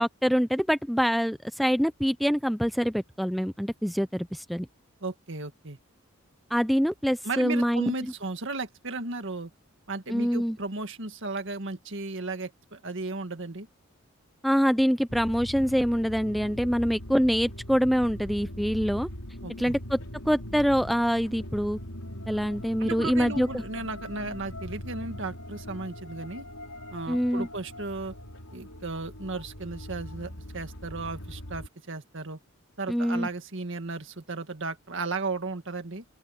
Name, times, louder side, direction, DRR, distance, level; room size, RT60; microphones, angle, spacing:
voice 1, 0.0-4.7 6.5-7.9 10.1-10.6 14.4-19.1 19.6-20.0 20.3-21.8 22.3-23.6 27.1-27.5 32.9-33.3, equal, ahead, 0.3 m, -25 dB
voice 2, 5.0-5.8 7.2-9.5 9.9-13.7 19.4-19.7 22.8-26.5 26.9-28.1 28.5-32.4 32.8-36.0, right 3 dB, 55° right, 1.9 m, -35 dB
sound 1, 15.1-31.7, left 1 dB, 90° left, 4.6 m, -41 dB
open air
head